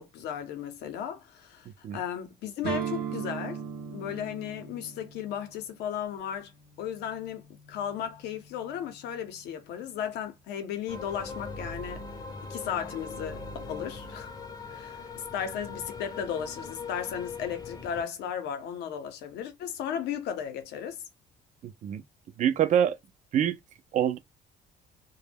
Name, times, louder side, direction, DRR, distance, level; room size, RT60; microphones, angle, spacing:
voice 1, 0.0-3.6 3.9-6.5 6.8-7.4 7.7-12.0 12.5-14.3 14.7-21.0, left 8 dB, 80° left, 0.7 m, -35 dB
sound 1, 2.6-10.4, right 7 dB, 80° right, 0.7 m, -40 dB
sound 2, 10.9-18.0, left 4 dB, 25° left, 0.6 m, -41 dB
voice 2, 21.6-22.0 22.4-23.0 23.3-23.6 23.9-24.2, right 9 dB, 45° right, 0.4 m, -25 dB
2.2 x 2.1 x 3.3 m
cardioid pair, 110°, 17 cm